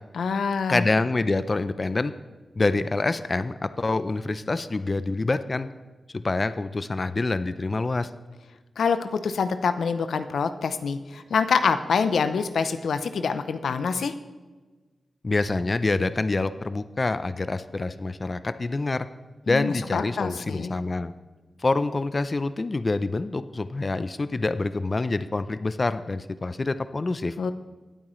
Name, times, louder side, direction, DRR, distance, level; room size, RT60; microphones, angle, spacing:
voice 1, 0.2-0.9 8.8-14.1 19.5-20.8 27.4-27.5, left 5 dB, 85° left, 10 dB, 0.6 m, -26 dB
voice 2, 0.7-2.1 2.6-5.7 6.1-8.1 15.2-19.1 19.5-21.1 21.6-27.3, left 3 dB, 40° left, 13 dB, 0.5 m, -26 dB
19.0 x 8.7 x 3.1 m, 1.3 s
cardioid pair, 55°, 0 cm